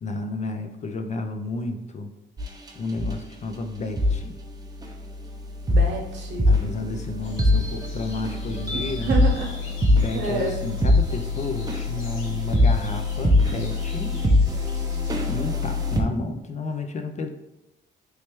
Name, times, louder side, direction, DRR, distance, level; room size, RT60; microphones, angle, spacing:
voice 1, 0.0-2.1 2.8-4.4 6.5-9.1 9.9-14.2 15.3-17.3, left 3 dB, 35° left, 6 dB, 0.4 m, -31 dB
sound 1, 2.4-2.7 3.0-3.2 4.0-4.2 4.8-16.0, left 2 dB, 20° right, 0.5 m, -23 dB
voice 2, 5.7-6.5 9.1-9.5 10.1-10.6, right 3 dB, 65° right, 0 dB, 0.9 m, -28 dB
sound 2, 7.2-15.3, left 2 dB, 80° left, 0.8 m, -47 dB
3.2 x 3.1 x 2.9 m, 0.93 s
cardioid pair, 90°, 20 cm